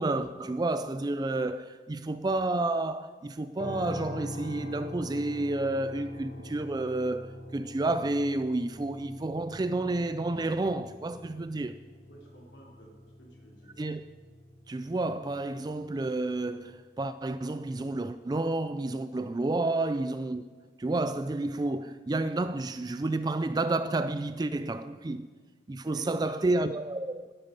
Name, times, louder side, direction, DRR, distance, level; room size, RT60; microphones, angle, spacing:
voice 1, 0.0-11.8 13.8-14.0 14.7-20.4 20.8-25.3 25.7-27.3, right 2 dB, 20° right, 0.3 m, -30 dB
sound 1, 3.6-17.6, left 1 dB, 40° left, 1.1 m, -44 dB
voice 2, 12.0-13.8 19.3-19.5 25.9-26.4, right 1 dB, 70° left, 3.8 m, -52 dB
19.5 x 8.9 x 5.4 m
head